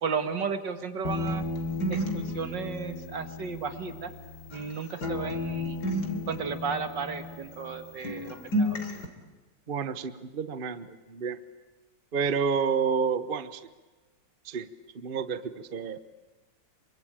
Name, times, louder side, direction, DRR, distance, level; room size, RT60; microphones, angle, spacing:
voice 1, 0.0-1.4 1.9-4.1 4.5-5.8 6.3-8.8, right 5 dB, 70° right, 9 dB, 2.5 m, -34 dB
sound 1, 1.1-4.7 5.0-7.8 8.0-9.1, left 1 dB, 60° left, 3.6 m, -32 dB
voice 2, 9.7-11.4 12.1-13.6 14.4-14.7 14.9-16.0, right 6 dB, 35° right, 13 dB, 1.0 m, -29 dB
27.5 x 24.0 x 8.8 m, 1.2 s
omnidirectional pair, 2.0 m